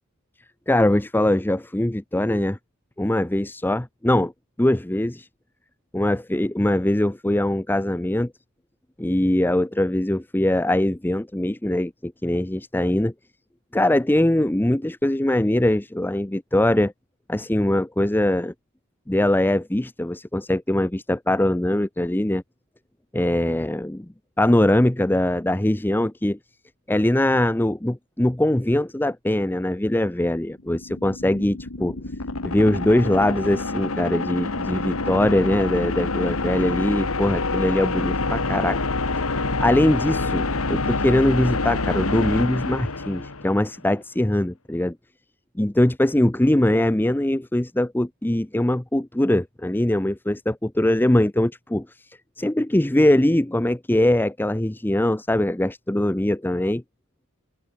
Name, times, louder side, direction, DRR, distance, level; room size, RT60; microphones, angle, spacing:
voice 1, 0.7-2.6 3.0-4.3 4.6-5.3 5.9-8.3 9.0-13.1 13.7-16.9 17.3-18.5 19.1-22.4 23.1-24.1 24.4-26.4 26.9-32.0 32.4-38.8 39.2-45.0 45.6-56.8, left 1 dB, 10° left, 0.6 m, -22 dB
sound 1, 30.6-43.7, left 3 dB, 70° left, 2.0 m, -27 dB
head